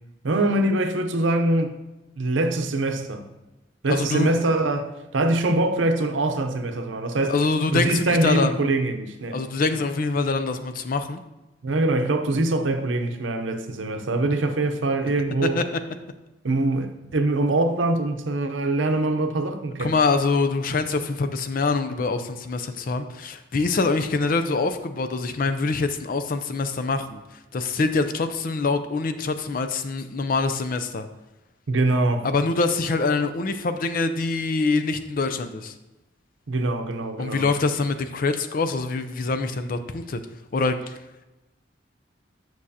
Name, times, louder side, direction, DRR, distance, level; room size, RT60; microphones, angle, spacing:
voice 1, 0.2-1.7 2.2-3.3 3.8-7.4 7.7-9.4 11.6-15.6 16.4-19.9 31.7-32.3 36.5-37.5, right 2 dB, 85° right, 0.7 m, -23 dB
voice 2, 3.9-4.3 7.3-8.6 9.3-11.2 15.4-15.6 19.8-27.2 27.5-31.1 32.2-35.7 37.2-40.2 40.5-40.8, left 3 dB, 50° left, 0.5 m, -24 dB
8.6 x 6.2 x 2.8 m
head